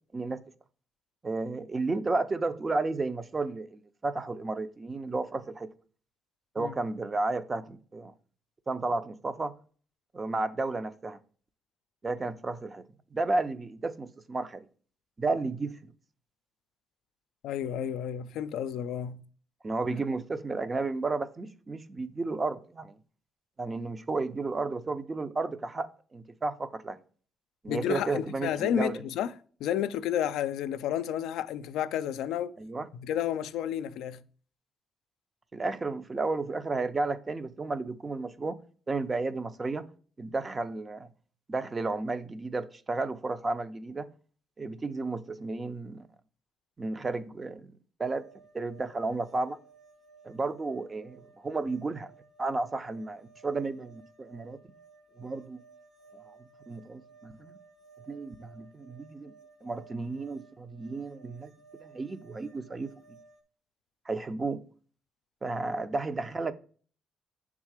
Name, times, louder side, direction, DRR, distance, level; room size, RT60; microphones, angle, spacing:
voice 1, 1.2-5.7 6.5-8.1 8.7-9.5 10.1-11.2 12.0-12.8 13.1-14.7 15.2-15.9 19.6-23.0 23.6-27.0 27.6-29.0 32.6-32.9 35.5-38.6 38.9-39.8 40.2-41.1 41.5-44.1 44.6-46.1 46.8-48.3 48.5-49.6 50.2-52.1 52.4-54.6 55.2-55.6 56.1-56.4 56.7-57.6 58.1-59.3 59.6-61.5 61.8-63.2 64.1-64.6 65.4-66.5, right 3 dB, 30° right, 0.6 m, -33 dB
voice 2, 17.4-19.2 19.9-20.0 27.7-29.3 29.6-32.5 32.9-34.2, left 10 dB, 90° left, 0.4 m, -31 dB
sound 1, 48.0-63.4, right 4 dB, 50° right, 0.9 m, -57 dB
6.5 x 3.6 x 4.8 m
cardioid pair, 90°, 0 cm